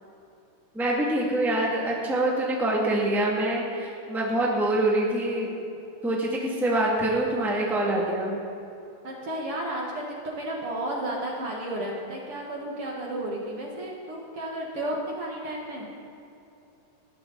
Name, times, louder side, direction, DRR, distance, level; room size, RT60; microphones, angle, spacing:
voice 1, 0.7-5.5 6.0-8.4, right 1 dB, ahead, -3 dB, 1.9 m, -25 dB
voice 2, 9.0-15.9, right 1 dB, 50° right, -2 dB, 2.3 m, -33 dB
19.5 x 14.5 x 4.2 m, 2.8 s
omnidirectional pair, 3.8 m